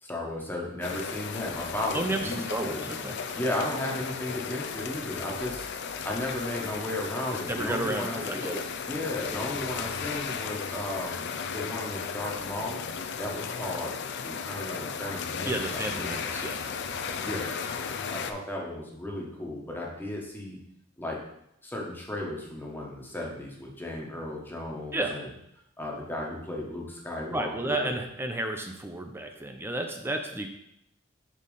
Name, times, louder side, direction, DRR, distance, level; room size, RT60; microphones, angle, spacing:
voice 1, 0.0-2.9 3.4-5.7 6.0-8.5 8.8-12.8 13.2-13.9 14.2-16.2 17.2-17.5 17.8-20.6 21.0-21.2 21.6-25.3 25.8-28.0, left 1 dB, 10° left, -2 dB, 1.2 m, -35 dB
sound 1, 0.8-18.3, left 6 dB, 55° left, 0.5 m, -35 dB
voice 2, 1.9-3.2 7.5-8.6 15.4-16.6 24.9-25.2 27.3-30.5, right 1 dB, 10° right, 4 dB, 0.5 m, -32 dB
5.1 x 4.1 x 5.4 m, 0.78 s
head